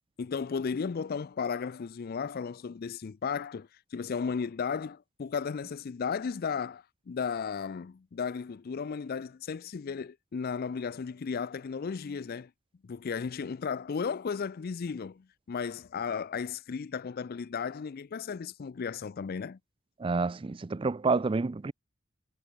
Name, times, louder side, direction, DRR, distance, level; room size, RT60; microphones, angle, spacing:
voice 1, 0.2-12.5 12.8-19.6, left 6 dB, 45° left, 0.4 m, -35 dB
voice 2, 20.0-21.7, right 4 dB, 25° right, 0.4 m, -28 dB
head